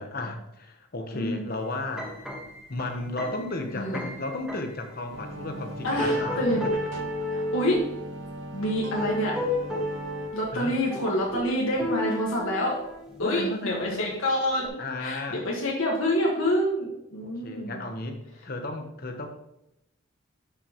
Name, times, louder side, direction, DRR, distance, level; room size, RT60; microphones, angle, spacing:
voice 1, 0.0-2.1 2.7-6.8 10.5-10.8 13.2-14.1 14.8-15.4 17.2-19.3, left 2 dB, 45° left, 5 dB, 1.0 m, -34 dB
sound 1, 1.8-4.8 5.5-5.6 6.0-7.9 8.8-10.4 10.9-13.3 13.7-14.1 14.6-14.7, left 1 dB, 5° right, 1.4 m, -32 dB
sound 2, 5.1-10.3, right 1 dB, 65° right, 0.9 m, -39 dB
voice 2, 5.8-6.7 7.3-7.8 8.5-9.4 10.3-12.8 13.2-14.7 15.0-17.8, equal, 85° left, -2 dB, 1.6 m, -27 dB
11.0 x 5.3 x 3.0 m, 0.82 s
head